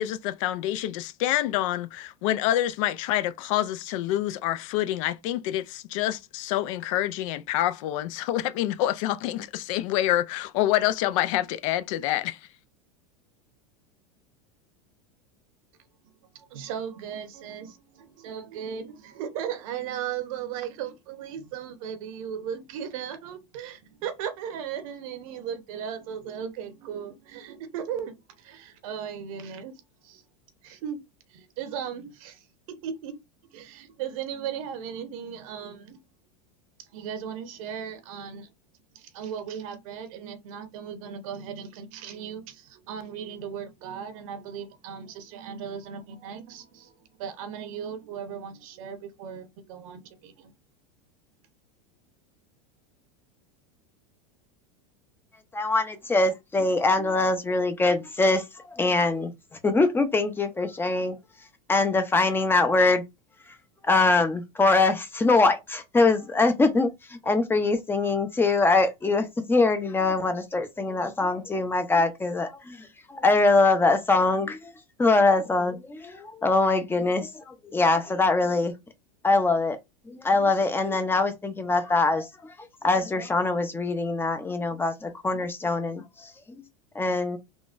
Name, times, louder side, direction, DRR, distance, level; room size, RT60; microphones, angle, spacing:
voice 1, 0.0-12.4, left 13 dB, 65° left, 0.4 m, -27 dB
voice 2, 16.0-30.2 30.6-31.0 31.3-33.2 33.5-36.0 36.8-38.5 38.9-50.5, right 8 dB, 70° right, 0.9 m, -37 dB
voice 3, 55.5-59.3 59.6-61.2 61.7-63.0 63.9-74.7 75.0-78.7 79.2-79.8 80.1-82.5 82.8-86.3 86.9-87.4, left 3 dB, 10° left, 0.6 m, -23 dB
3.6 x 2.2 x 2.5 m
supercardioid pair, 120°, 18 cm